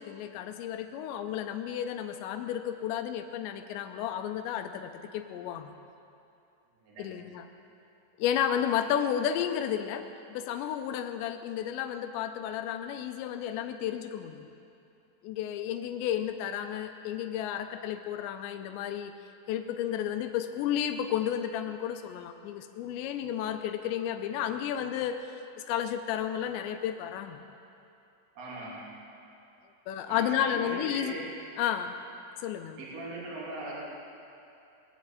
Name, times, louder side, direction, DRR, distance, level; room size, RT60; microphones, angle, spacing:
voice 1, 0.0-5.7 7.0-7.5 8.2-14.5 15.2-19.1 19.5-27.4 29.9-31.1 31.6-31.9 32.4-32.8, left 10 dB, 85° left, 8 dB, 2.9 m, -32 dB
voice 2, 6.8-7.2 28.4-28.9 30.1-31.3 32.8-33.8, right 1 dB, 40° right, -6 dB, 3.8 m, -39 dB
22.0 x 7.5 x 8.7 m, 2.7 s
omnidirectional pair, 5.2 m